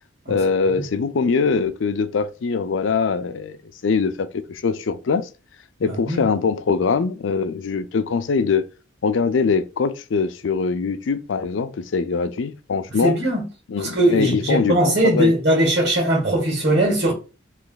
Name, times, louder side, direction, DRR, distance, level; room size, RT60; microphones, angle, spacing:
voice 1, 0.3-3.6 3.8-5.3 5.8-8.6 9.0-13.1 13.7-15.3, left 5 dB, 75° left, 0.4 m, -22 dB
voice 2, 5.9-6.2 13.0-13.4 13.8-17.1, right 1 dB, 65° right, 1.8 m, -20 dB
3.2 x 2.9 x 3.9 m
head